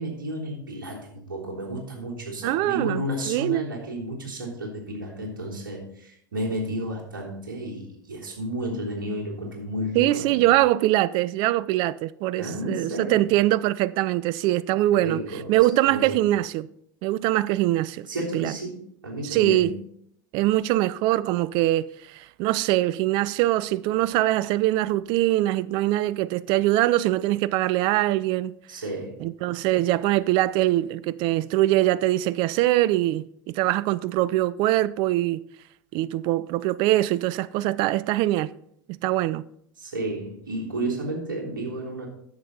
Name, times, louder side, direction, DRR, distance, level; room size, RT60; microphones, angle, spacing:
voice 1, 0.0-10.5 12.4-13.3 14.9-15.5 15.9-16.2 18.1-19.8 28.7-29.2 39.8-42.1, right 1 dB, 75° right, 3.4 m, -32 dB
voice 2, 2.4-3.7 9.9-15.2 15.5-16.7 17.0-18.1 18.3-18.5 19.2-19.7 20.3-28.5 29.2-33.2 33.5-35.4 35.9-38.5 39.0-39.4, right 15 dB, 45° right, 0.4 m, -23 dB
10.5 x 7.5 x 4.2 m
figure-of-eight pair, 85°, 11 cm